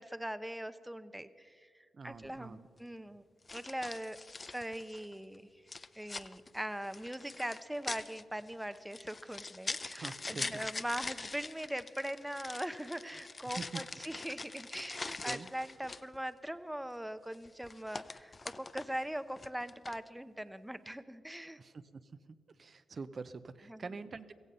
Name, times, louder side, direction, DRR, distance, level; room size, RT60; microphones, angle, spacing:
voice 1, 0.0-3.2 3.5-4.2 4.5-5.4 5.9-21.6 23.7-23.8, equal, 5° right, 13 dB, 0.7 m, -41 dB
voice 2, 1.9-2.7 9.9-10.6 13.6-13.8 15.2-15.5 21.6-22.3 22.6-24.3, right 4 dB, 50° right, 11 dB, 0.7 m, -45 dB
sound 1, 2.1-2.4 3.5-5.1 5.7-16.2 17.3-19.0 19.3-20.1, left 3 dB, 35° left, 0.5 m, -43 dB
16.0 x 15.5 x 5.5 m, 2.1 s
cardioid pair, 70°, 0 cm